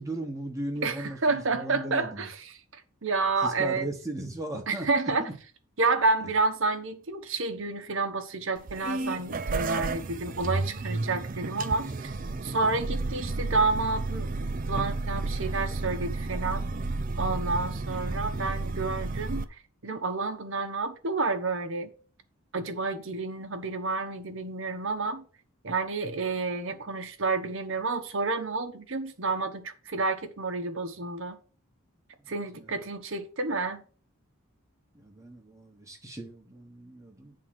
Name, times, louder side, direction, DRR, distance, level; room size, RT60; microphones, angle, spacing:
voice 1, 0.0-2.3 3.4-4.9 5.2-5.3 11.9-12.6 32.2-32.8 34.9-37.3, right 1 dB, 15° right, 1.2 m, -38 dB
voice 2, 0.8-2.6 3.0-3.9 4.7-5.3 5.8-12.1 12.4-14.4 14.7-16.7 17.2-19.4 19.8-21.9 22.5-25.2 25.6-31.4 32.3-33.8, right 3 dB, 60° right, 1.0 m, -29 dB
sound 1, 8.6-19.4, right 3 dB, 35° right, 0.5 m, -32 dB
9.1 x 3.8 x 6.0 m
head